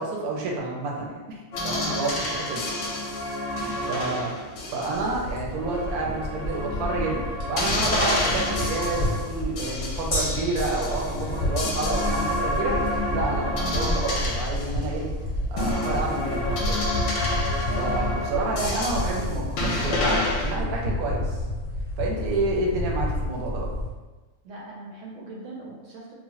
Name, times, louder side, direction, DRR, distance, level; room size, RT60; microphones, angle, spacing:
voice 1, 0.0-2.6 3.6-4.3 4.7-15.1 15.5-16.8 17.8-21.4 22.0-23.7, right 3 dB, 85° right, -1 dB, 1.1 m, -29 dB
sound 1, 1.5-5.2 5.6-10.2 10.6-15.1 15.6-20.5, left 1 dB, 70° left, 0.9 m, -29 dB
voice 2, 3.9-4.2 17.7-18.0 24.4-26.1, right 2 dB, 65° right, -4 dB, 0.8 m, -40 dB
sound 2, 4.9-23.9, left 1 dB, 15° left, 1.0 m, -30 dB
Gong, 10.1-17.9 18.2-18.3, left 1 dB, 50° left, 0.7 m, -39 dB
3.0 x 2.1 x 2.9 m, 1.2 s
omnidirectional pair, 1.5 m